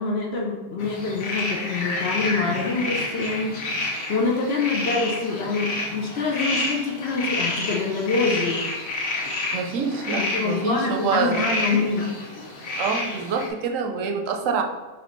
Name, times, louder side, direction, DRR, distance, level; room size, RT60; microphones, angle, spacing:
voice 1, 0.0-3.5 4.1-8.7 10.2-12.1, left 4 dB, 55° left, 0 dB, 0.8 m, -25 dB
sound 1, 0.8-13.5, left 2 dB, 85° left, 1.4 m, -29 dB
voice 2, 9.5-11.5 12.8-14.6, right 5 dB, 75° right, 3 dB, 0.9 m, -26 dB
6.4 x 2.6 x 3.0 m, 1.3 s
omnidirectional pair, 1.4 m